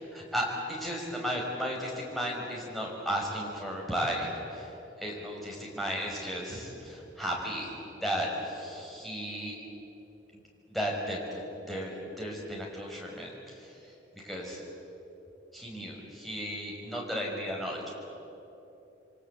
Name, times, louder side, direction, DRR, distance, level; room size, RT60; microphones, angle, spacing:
voice 1, 0.1-9.6 10.7-14.6 15.5-17.9, equal, ahead, -3 dB, 5.6 m, -35 dB
28.5 x 24.0 x 8.4 m, 3.0 s
head